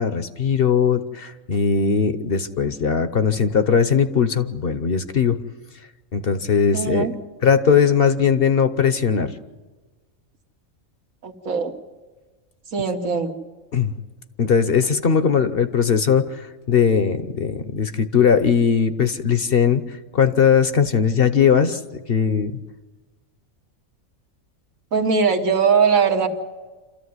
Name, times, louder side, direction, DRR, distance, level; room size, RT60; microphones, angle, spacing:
voice 1, 0.0-5.4 6.1-7.1 7.4-9.3 13.7-13.9 14.4-21.8 22.1-22.6, left 6 dB, 50° left, 11 dB, 1.0 m, -19 dB
voice 2, 6.7-7.1 11.2-11.7 12.7-13.3 24.9-26.3, right 5 dB, 80° right, 3 dB, 2.0 m, -20 dB
27.0 x 14.0 x 9.6 m, 1.3 s
omnidirectional pair, 1.4 m